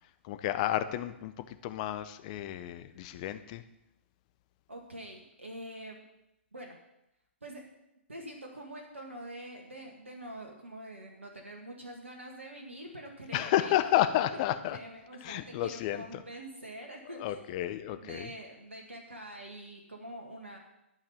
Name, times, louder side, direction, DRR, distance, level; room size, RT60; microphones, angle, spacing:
voice 1, 0.2-3.6 13.3-14.8 15.2-16.2 17.1-18.3, left 13 dB, 35° left, 11 dB, 0.7 m, -31 dB
voice 2, 4.7-6.0 6.5-6.8 7.4-7.6 8.1-13.8 14.3-14.4 14.7-20.6, right 1 dB, 80° right, 1 dB, 1.7 m, -45 dB
11.5 x 5.7 x 6.7 m, 0.88 s
figure-of-eight pair, 115°, 7 cm